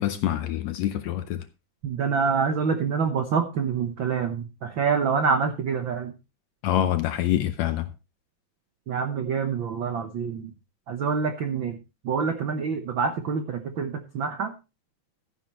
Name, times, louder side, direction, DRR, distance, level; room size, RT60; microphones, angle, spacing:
voice 1, 0.0-1.4 6.6-7.9, left 12 dB, 75° left, 1.7 m, -26 dB
voice 2, 1.8-6.1 8.9-10.5 10.9-11.8 12.0-14.5, right 6 dB, 75° right, 1.1 m, -26 dB
14.0 x 9.9 x 3.1 m
omnidirectional pair, 3.7 m